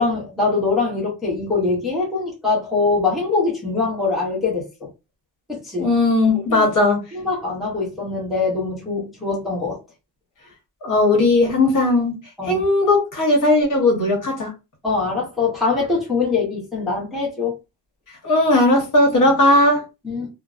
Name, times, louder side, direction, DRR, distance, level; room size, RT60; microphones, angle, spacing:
voice 1, 0.0-4.9 5.5-5.9 6.5-6.7 7.1-9.8 12.4-12.6 14.8-17.5 20.0-20.3, left 4 dB, ahead, 0.7 m, -23 dB
voice 2, 5.8-7.0 10.8-12.2 12.4-14.5 18.2-19.8, left 2 dB, 45° left, 1.0 m, -17 dB
2.6 x 2.0 x 2.3 m
cardioid pair, 150°, 44 cm